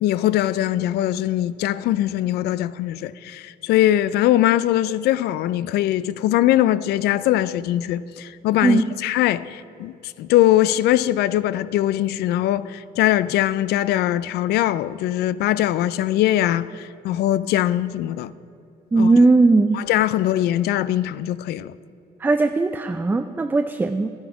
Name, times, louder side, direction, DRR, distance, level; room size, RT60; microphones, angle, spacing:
voice 1, 0.0-18.3 19.0-19.1 19.7-21.7, left 13 dB, 75° left, 0.4 m, -21 dB
voice 2, 18.9-19.8 22.2-24.1, right 3 dB, 10° right, 0.3 m, -18 dB
12.0 x 9.4 x 5.0 m
cardioid pair, 110°, 17 cm